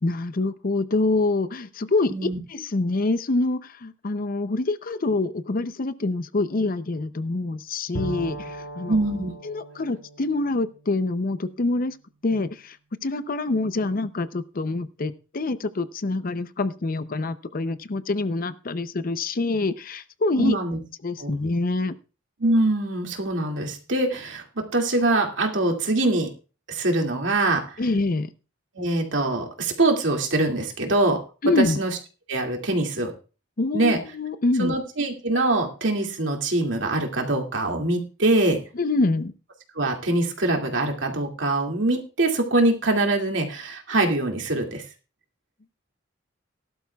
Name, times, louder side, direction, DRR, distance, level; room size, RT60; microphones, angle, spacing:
voice 1, 0.0-9.0 9.4-12.0 12.2-12.8 13.0-20.6 21.0-21.9 27.8-28.3 31.4-31.8 33.6-34.8 38.8-39.3, left 2 dB, 45° left, 13 dB, 0.6 m, -26 dB
Bowed string instrument, 7.9-11.7, right 1 dB, 85° left, 1.7 m, -38 dB
voice 2, 8.9-9.3 20.4-20.8 21.2-21.3 22.4-24.4 24.7-26.3 26.7-27.6 28.8-31.2 31.6-31.9 32.3-33.1 33.7-34.0 34.6-38.6 39.8-44.8, right 2 dB, 70° right, 2 dB, 2.3 m, -23 dB
18.0 x 12.0 x 2.3 m, 0.34 s
head